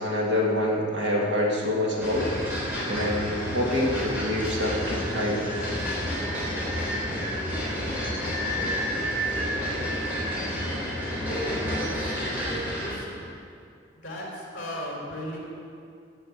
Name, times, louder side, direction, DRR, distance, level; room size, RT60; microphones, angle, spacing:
voice 1, 0.0-2.3 2.8-5.4, left 1 dB, 60° right, -2 dB, 2.3 m, -26 dB
sound 1, 2.0-13.0, equal, 10° right, 3.7 m, -30 dB
voice 2, 11.3-13.3 14.0-15.4, equal, 40° left, -3 dB, 3.7 m, -36 dB
16.0 x 6.3 x 8.1 m, 2.4 s
head